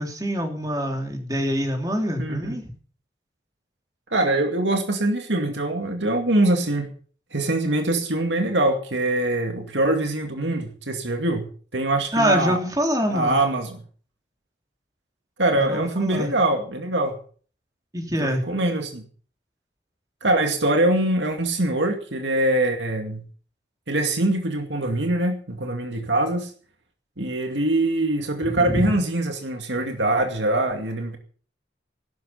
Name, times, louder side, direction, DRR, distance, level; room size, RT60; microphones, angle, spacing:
voice 1, 0.0-2.6 12.1-13.4 15.5-16.3 17.9-18.4 28.6-28.8, equal, 20° right, 3 dB, 3.1 m, -25 dB
voice 2, 2.2-2.6 4.1-6.9 7.3-12.6 13.1-13.8 15.4-17.2 18.2-19.0 20.2-23.2 23.9-26.5 27.2-31.2, right 1 dB, 85° right, 4 dB, 2.3 m, -23 dB
16.0 x 12.5 x 5.7 m, 0.44 s
head